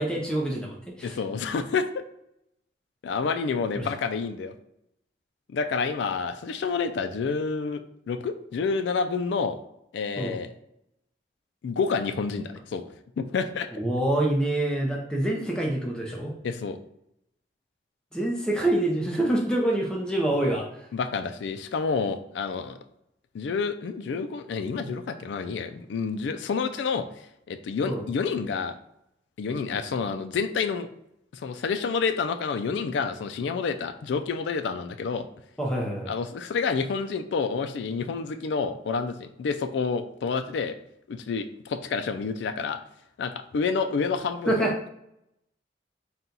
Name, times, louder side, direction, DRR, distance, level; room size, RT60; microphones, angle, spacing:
voice 1, 0.0-1.2 3.7-3.9 10.2-10.3 13.7-16.3 18.1-20.9 24.8-24.9 27.8-28.0 35.6-36.1 44.5-44.7, right 1 dB, 5° left, -1 dB, 0.6 m, -26 dB
voice 2, 1.0-2.0 3.0-4.5 5.5-9.6 9.9-10.5 11.6-12.8 13.2-13.7 16.4-16.8 20.9-22.8 23.3-27.1 27.5-28.7 29.4-30.9 31.4-35.3 36.1-40.8 41.1-42.8 43.2-44.9, left 5 dB, 80° left, 9 dB, 0.3 m, -29 dB
4.2 x 2.3 x 3.8 m, 0.78 s
head